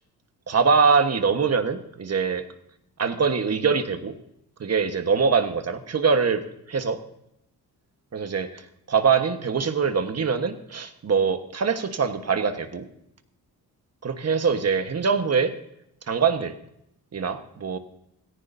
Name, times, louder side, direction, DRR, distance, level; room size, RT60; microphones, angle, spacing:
voice 1, 0.5-2.4 3.0-4.1 4.6-6.4 6.7-7.0 8.1-8.6 8.9-12.8 14.0-15.5 16.1-16.5 17.1-17.8, right 5 dB, 40° right, 8 dB, 1.3 m, -23 dB
17.0 x 14.5 x 2.7 m, 0.77 s
cardioid pair, 100°, 38 cm